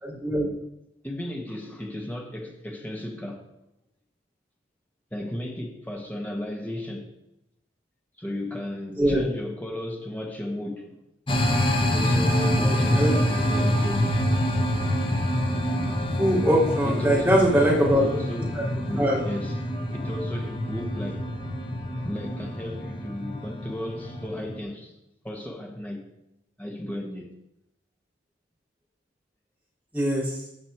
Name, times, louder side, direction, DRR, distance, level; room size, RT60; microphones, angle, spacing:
voice 1, 0.0-0.5 9.0-9.2 12.6-13.1 16.2-18.0 18.6-18.7 19.0-19.2 29.9-30.4, equal, 10° right, 3.5 m, -22 dB
voice 2, 1.0-3.4 5.1-7.1 8.2-11.0 11.9-14.2 16.8-21.3 21.8-24.9 25.2-26.1 26.6-27.3, left 1 dB, 10° left, 1.4 m, -35 dB
sound 1, 11.3-24.5, equal, 30° left, 1.2 m, -26 dB
15.5 x 5.2 x 4.6 m
head